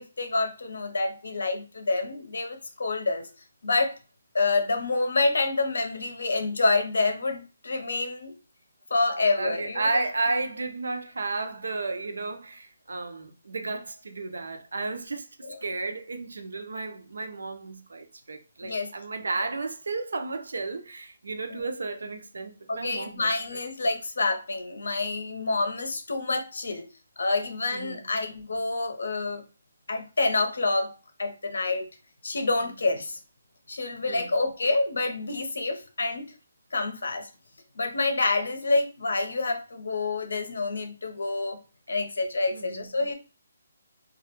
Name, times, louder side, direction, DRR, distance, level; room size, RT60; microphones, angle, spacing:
voice 1, 0.0-3.3 3.6-3.9 4.3-8.3 8.9-9.9 15.4-15.6 18.6-18.9 21.5-21.6 22.7-26.8 27.2-29.4 29.9-31.8 32.2-33.2 33.7-36.3 36.7-37.3 37.8-41.6 41.9-43.1, left 3 dB, 80° left, 0.6 m, -27 dB
voice 2, 9.4-23.2 27.7-28.0 32.4-32.5 34.1-34.4 42.5-42.8, right 3 dB, 85° right, 0.5 m, -33 dB
2.3 x 2.1 x 2.9 m
hypercardioid pair, 175°, 0 cm